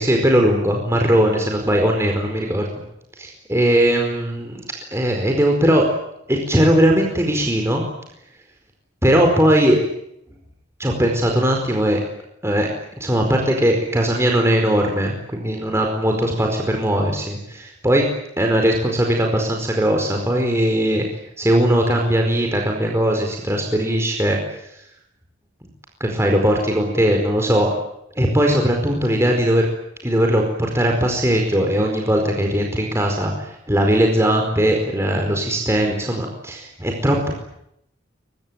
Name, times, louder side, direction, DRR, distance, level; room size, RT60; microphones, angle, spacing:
voice 1, 0.0-2.7 3.2-4.6 4.9-5.8 6.3-7.8 9.0-9.8 10.8-12.0 12.4-12.7 13.0-18.1 18.4-21.0 21.4-24.4 26.0-27.7 28.2-29.7 30.0-37.3, equal, 15° right, 1 dB, 4.7 m, -19 dB
23.5 x 23.0 x 9.4 m, 0.77 s
head